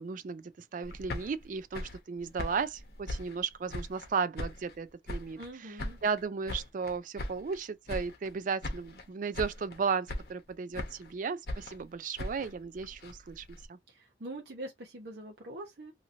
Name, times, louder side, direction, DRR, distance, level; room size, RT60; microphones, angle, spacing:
voice 1, 0.0-5.8 6.0-13.8, right 5 dB, 45° right, 0.3 m, -35 dB
sound 1, 0.8-4.1 4.4-5.5 5.8-7.6 7.9-8.4 8.6-9.1 9.3-9.8 10.1-11.1 11.5-13.7, left 1 dB, 60° left, 0.8 m, -40 dB
voice 2, 5.4-6.0 13.9-15.9, right 1 dB, 60° right, 0.8 m, -44 dB
2.8 x 2.7 x 2.6 m
head